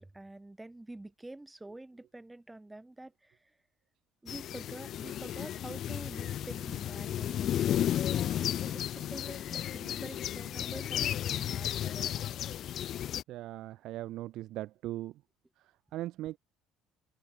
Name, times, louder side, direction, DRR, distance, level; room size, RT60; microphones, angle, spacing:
voice 1, 0.0-3.5 4.2-8.4 8.6-12.4, right 2 dB, 10° right, 3.5 m, -48 dB
sound 1, 4.3-13.2, left 11 dB, 55° left, 2.0 m, -33 dB
voice 2, 13.3-15.2 15.6-16.4, right 15 dB, 65° right, 0.7 m, -39 dB
supercardioid pair, 95°, 0 cm